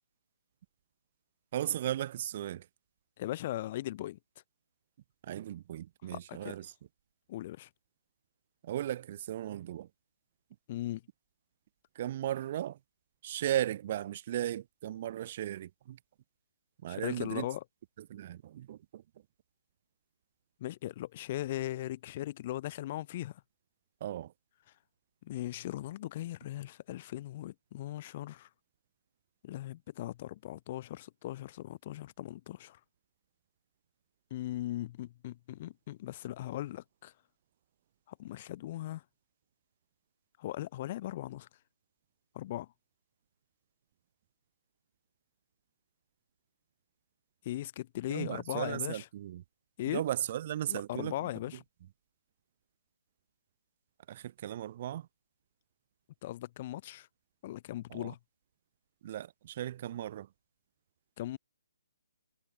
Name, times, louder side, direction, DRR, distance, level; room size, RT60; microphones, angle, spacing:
voice 1, 1.5-2.7 5.2-6.7 8.6-9.9 11.9-12.8 13.2-16.0 16.8-17.5 18.0-19.0 24.0-24.3 48.1-49.4 49.9-51.2 54.1-55.1 57.9-58.1 59.0-60.3, right 12 dB, 40° right, 0.7 m, -36 dB
voice 2, 3.2-4.2 6.1-6.4 7.3-7.7 10.7-11.0 16.9-17.6 20.6-23.4 25.2-28.5 29.4-32.8 34.3-37.1 38.1-39.0 40.4-41.5 42.3-42.7 47.4-49.0 49.8-50.0 50.7-51.6 56.2-57.1 57.4-58.2 61.2-61.4, left 14 dB, 40° left, 1.2 m, -38 dB
figure-of-eight pair, 140°, 0 cm